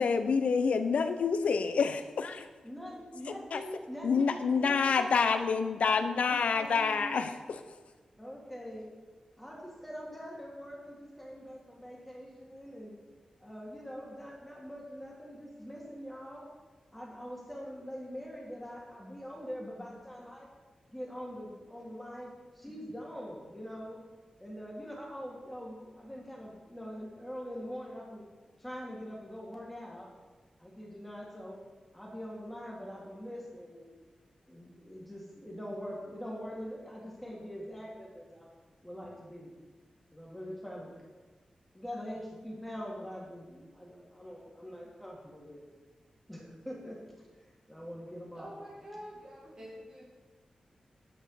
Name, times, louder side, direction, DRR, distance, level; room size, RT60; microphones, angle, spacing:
voice 1, 0.0-2.5 3.5-3.6 4.0-7.6, left 5 dB, 90° left, 9 dB, 0.7 m, -28 dB
voice 2, 2.6-5.1 6.1-7.1 8.2-8.9 9.4-13.0 13.4-16.4 16.9-20.5 20.9-24.0 24.4-28.2 28.6-30.1 30.6-31.6 31.9-33.9 34.5-38.5 38.8-39.5 40.1-41.0 41.7-45.7 46.3-47.0 47.7-48.6, equal, 5° left, -3 dB, 2.3 m, -43 dB
voice 3, 48.3-50.0, equal, 40° right, -6 dB, 2.2 m, -46 dB
10.0 x 5.3 x 6.5 m, 1.3 s
wide cardioid pair, 135°, 2 cm